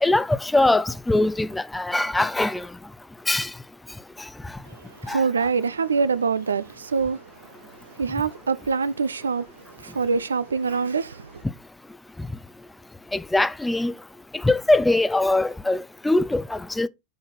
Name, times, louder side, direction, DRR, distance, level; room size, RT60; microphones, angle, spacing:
voice 1, 0.0-2.7 3.3-3.5 5.1-5.2 13.1-13.9 14.4-16.9, left 2 dB, 5° left, 0.5 m, -22 dB
voice 2, 4.7-11.4, right 5 dB, 70° right, 0.4 m, -25 dB
6.8 x 4.0 x 6.0 m
figure-of-eight pair, 90°, 0 cm